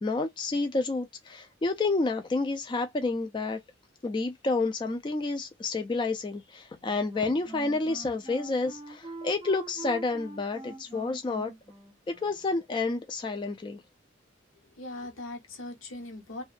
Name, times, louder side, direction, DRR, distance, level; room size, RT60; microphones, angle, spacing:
voice 1, 0.0-3.6 4.0-11.5 12.1-13.8, left 3 dB, 25° left, 0.3 m, -29 dB
Wind instrument woodwind instrument, 6.7-12.6, right 2 dB, 25° right, 0.6 m, -45 dB
voice 2, 14.5-16.4, left 2 dB, 80° left, 0.9 m, -40 dB
2.6 x 2.1 x 2.3 m
head